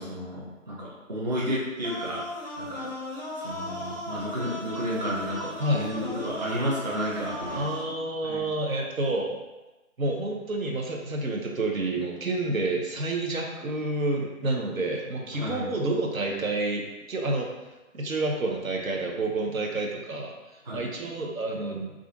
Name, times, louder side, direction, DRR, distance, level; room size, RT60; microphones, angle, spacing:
voice 1, 0.0-2.2 2.6-2.9 3.4-7.7 8.2-8.5 15.3-15.7 20.6-20.8, equal, 35° right, -6 dB, 0.5 m, -32 dB
sound 1, 1.8-7.8, left 1 dB, 35° left, 0.4 m, -37 dB
voice 2, 5.6-5.9 7.5-9.3 10.0-17.5 17.9-21.9, right 2 dB, 80° right, 1 dB, 0.7 m, -29 dB
2.4 x 2.4 x 3.7 m, 1.1 s
figure-of-eight pair, 150°, 41 cm